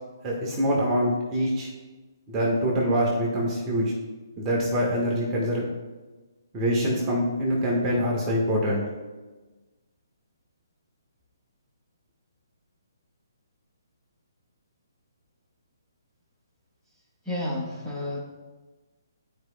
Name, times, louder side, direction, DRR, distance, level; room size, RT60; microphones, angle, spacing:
voice 1, 0.2-1.7 2.3-3.9 4.4-5.6 6.5-8.8, equal, 20° right, -3 dB, 1.5 m, -24 dB
voice 2, 17.2-18.2, left 1 dB, 5° left, -8 dB, 1.6 m, -30 dB
12.0 x 4.8 x 2.3 m, 1.2 s
hypercardioid pair, 140°, 2 cm